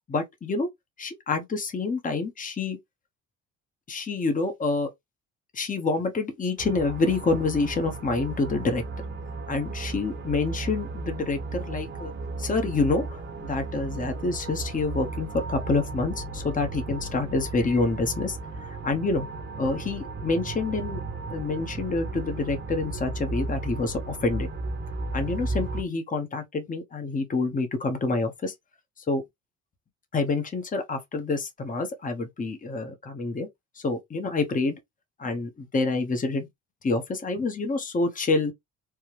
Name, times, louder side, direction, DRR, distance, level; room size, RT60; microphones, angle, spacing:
voice 1, 0.1-0.7 1.0-2.8 3.9-4.9 5.5-8.8 9.5-12.1 12.4-13.2 13.5-19.3 19.6-21.0 21.3-24.5 25.1-28.5 29.1-29.2 30.1-33.5 33.8-34.7 35.2-36.5 36.8-38.5, left 3 dB, 25° left, 1.0 m, -27 dB
sound 1, 6.6-25.8, right 3 dB, 35° right, 1.0 m, -35 dB
3.5 x 2.2 x 3.0 m
supercardioid pair, 85°, 31 cm